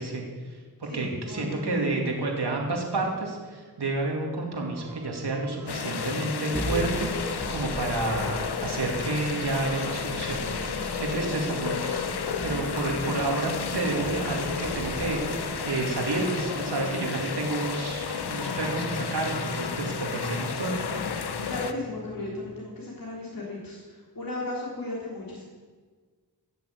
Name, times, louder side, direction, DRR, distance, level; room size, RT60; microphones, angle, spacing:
voice 1, 0.0-10.7 11.0-12.0 12.4-20.9, right 2 dB, 85° right, 0 dB, 2.8 m, -30 dB
voice 2, 0.8-2.0 11.8-12.3 21.4-25.4, left 2 dB, 60° left, -5 dB, 3.7 m, -36 dB
sound 1, 4.6-22.6, right 4 dB, 65° right, 1.4 m, -45 dB
sound 2, 5.7-21.7, left 6 dB, 75° left, 0.9 m, -32 dB
sound 3, 6.5-17.4, equal, 5° left, 1.3 m, -39 dB
16.5 x 7.1 x 8.5 m, 1.5 s
wide cardioid pair, 75°, 39 cm